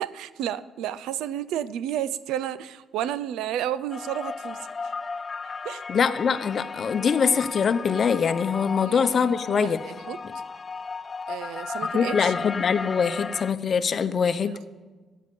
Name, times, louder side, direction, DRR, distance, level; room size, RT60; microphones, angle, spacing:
voice 1, 0.0-4.6 5.6-5.8 8.8-9.0 9.5-10.2 11.3-12.3, right 11 dB, 90° right, 17 dB, 0.5 m, -31 dB
sound 1, 3.9-13.5, left 4 dB, 35° left, 0.4 m, -35 dB
voice 2, 5.9-9.8 11.9-14.5, left 6 dB, 50° left, 12 dB, 0.8 m, -23 dB
15.0 x 9.5 x 6.9 m, 1.3 s
cardioid pair, 90°, 0 cm